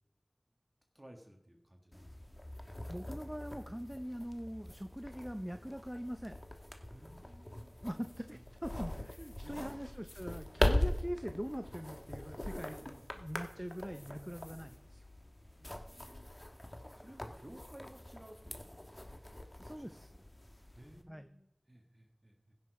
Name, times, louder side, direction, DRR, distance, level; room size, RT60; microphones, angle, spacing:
voice 1, 0.9-2.3 6.9-8.0 9.4-9.8 10.7-10.9 12.7-13.1 15.6-16.3 16.9-19.1 19.5-20.2 20.7-22.5, right 1 dB, 25° right, 2 dB, 1.7 m, -57 dB
sound 1, 1.9-21.0, left 1 dB, 35° left, 1.4 m, -41 dB
voice 2, 2.6-6.4 7.8-12.8 13.2-15.0 19.6-20.1 21.1-21.3, equal, 5° right, 8 dB, 0.6 m, -43 dB
16.0 x 6.3 x 4.8 m, 0.82 s
wide cardioid pair, 40°, 0 cm